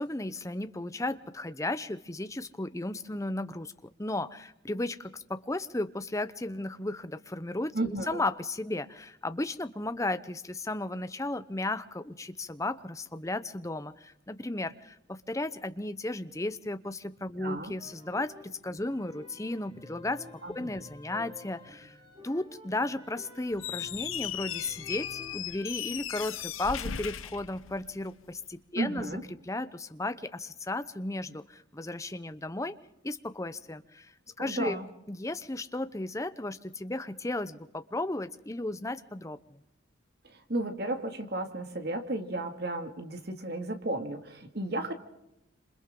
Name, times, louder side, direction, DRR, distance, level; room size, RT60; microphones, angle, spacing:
voice 1, 0.0-3.7 4.0-20.2 20.5-22.0 22.2-32.8 33.0-34.1 34.4-34.8 35.1-39.6, left 2 dB, 15° left, 12 dB, 0.7 m, -34 dB
voice 2, 7.7-8.2 17.4-17.7 20.4-20.7 28.8-29.2 34.4-34.9 40.2-44.9, right 2 dB, 50° right, 6 dB, 2.2 m, -33 dB
sound 1, 17.8-25.4, left 2 dB, 25° right, 5.4 m, -51 dB
Squeak, 23.5-28.2, left 9 dB, 90° left, 0.9 m, -37 dB
27.5 x 27.0 x 3.8 m, 0.84 s
head